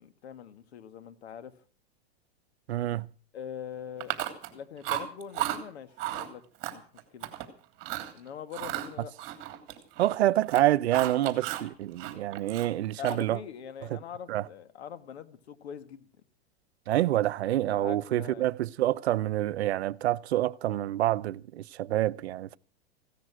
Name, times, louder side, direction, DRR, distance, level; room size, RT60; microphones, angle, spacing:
voice 1, 0.0-1.6 3.3-4.1 4.5-6.4 6.7-6.8 7.1-7.3 8.1-9.1 13.0-16.1 17.4-18.5, left 8 dB, 85° left, 2.0 m, -43 dB
voice 2, 2.7-3.1 10.0-13.4 14.3-14.5 16.9-22.6, right 14 dB, 80° right, 0.8 m, -27 dB
Chewing mastication, 4.0-4.6 4.8-5.6 6.0-6.3 6.6-7.5 7.8-8.1 8.5-10.2 10.4-11.7 12.0-13.4, right 14 dB, 40° right, 3.1 m, -34 dB
16.5 x 13.0 x 6.2 m
supercardioid pair, 150°, 32 cm